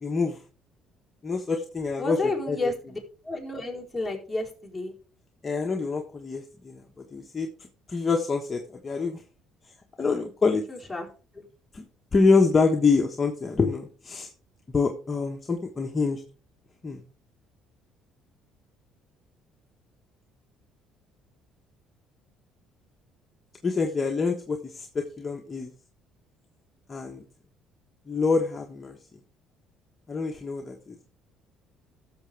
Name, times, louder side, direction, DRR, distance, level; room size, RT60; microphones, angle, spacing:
voice 1, 0.0-0.4 1.2-2.2 2.5-2.6 5.4-7.5 7.9-9.2 10.0-10.6 11.7-11.8 12.1-14.3 14.7-16.2 16.8-17.0 23.6-25.7 26.9-27.2 28.1-29.0 30.1-31.0, left 4 dB, 25° left, 2 dB, 1.3 m, -26 dB
voice 2, 2.0-4.9 10.7-11.5, left 2 dB, 5° left, -4 dB, 4.3 m, -32 dB
15.0 x 6.9 x 3.4 m, 0.39 s
cardioid pair, 105°, 0 cm